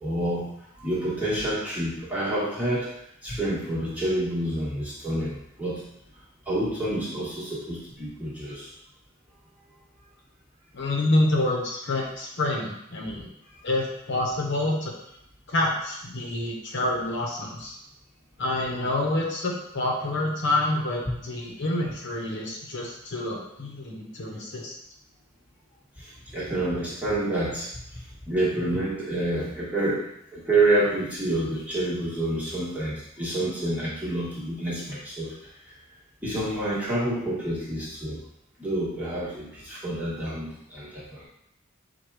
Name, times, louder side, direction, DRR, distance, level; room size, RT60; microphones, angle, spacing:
voice 1, 0.0-0.5 0.8-2.9 3.2-5.8 6.5-8.7 21.0-21.1 26.0-35.3 36.2-38.2 38.6-41.3, right 1 dB, 10° right, -8 dB, 1.4 m, -28 dB
voice 2, 10.7-13.3 13.6-14.9 15.5-17.8 18.4-24.7, left 1 dB, 60° left, -1 dB, 0.8 m, -27 dB
4.7 x 2.3 x 4.6 m, 0.76 s
head